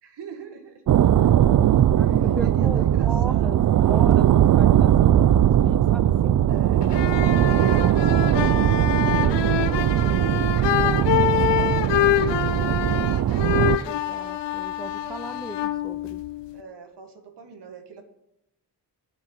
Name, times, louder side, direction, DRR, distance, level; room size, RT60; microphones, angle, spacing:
voice 1, 0.0-0.8 1.2-1.3 2.0-4.0 6.5-6.9 7.1-10.2 10.8-12.8 16.5-18.0, right 5 dB, 70° right, 5 dB, 1.9 m, -43 dB
sound 1, 0.9-13.8, right 11 dB, 50° right, 0.4 m, -19 dB
voice 2, 2.0-3.6 3.9-6.4 13.8-16.2, right 1 dB, ahead, 10 dB, 0.5 m, -37 dB
sound 2, 6.8-16.6, left 13 dB, 80° left, 0.7 m, -26 dB
9.4 x 7.5 x 7.4 m, 0.84 s
cardioid pair, 110°, 42 cm